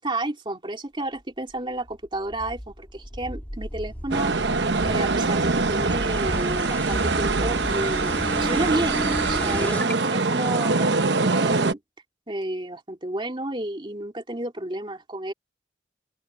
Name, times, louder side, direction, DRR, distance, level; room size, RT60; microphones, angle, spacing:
voice 1, 0.0-4.6 4.8-11.8 12.3-15.3, right 1 dB, 30° right, 2.7 m, -31 dB
sound 1, 1.9-9.9, equal, 10° left, 1.7 m, -32 dB
sound 2, 4.1-11.7, right 3 dB, 75° right, 0.9 m, -24 dB
open air
head